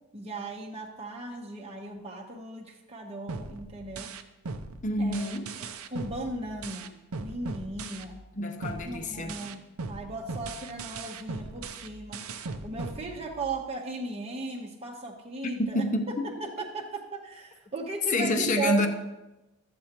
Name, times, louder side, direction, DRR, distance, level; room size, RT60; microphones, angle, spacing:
voice 1, 0.1-4.2 5.0-5.2 5.6-8.2 8.8-9.6 9.9-12.2 12.6-15.8 16.2-18.9, right 3 dB, 25° right, -1 dB, 0.8 m, -37 dB
sound 1, 3.3-8.3 8.6-13.6, right 3 dB, 75° right, 0.6 m, -39 dB
voice 2, 4.8-5.5 8.4-9.5 15.4-16.3 18.1-18.9, left 1 dB, 35° left, 6 dB, 0.7 m, -28 dB
13.5 x 7.7 x 2.9 m, 1.0 s
head